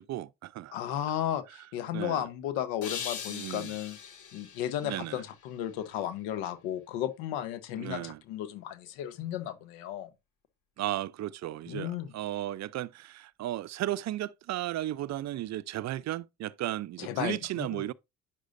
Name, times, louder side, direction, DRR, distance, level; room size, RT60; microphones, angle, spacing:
voice 1, 0.0-0.8 1.9-2.3 3.3-3.8 4.8-5.2 7.8-8.2 10.8-17.9, right 14 dB, 50° right, 0.5 m, -35 dB
voice 2, 0.7-4.0 4.3-10.1 11.7-12.1 17.0-17.8, left 11 dB, 80° left, 1.1 m, -34 dB
sound 1, 2.8-6.0, left 7 dB, 55° left, 1.6 m, -41 dB
9.1 x 6.3 x 2.5 m
supercardioid pair, 70°, 36 cm